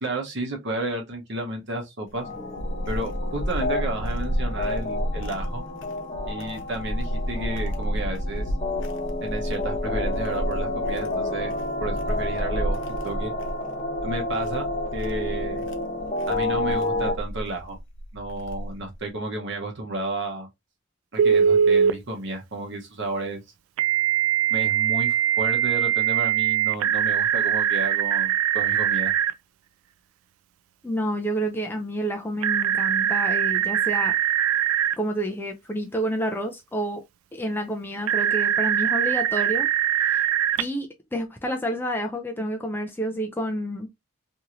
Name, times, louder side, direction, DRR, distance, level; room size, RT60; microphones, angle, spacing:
voice 1, 0.0-2.3 2.9-5.6 6.3-8.4 9.2-11.5 11.8-13.3 14.0-15.7 16.3-17.8 18.1-20.5 21.1-23.4 24.5-29.1, right 2 dB, 55° right, 0.9 m, -32 dB
sound 1, 2.1-18.9, equal, 55° left, 0.5 m, -31 dB
sound 2, 2.2-17.1, left 2 dB, 30° left, 0.8 m, -30 dB
Telephone, 21.2-21.9 23.8-29.3 32.4-34.9 38.1-40.6, right 9 dB, 75° right, 0.3 m, -22 dB
voice 2, 30.8-34.2 35.0-37.0 37.3-39.7 40.0-40.3 40.6-43.9, right 1 dB, 10° left, 0.3 m, -29 dB
2.9 x 2.7 x 2.5 m
head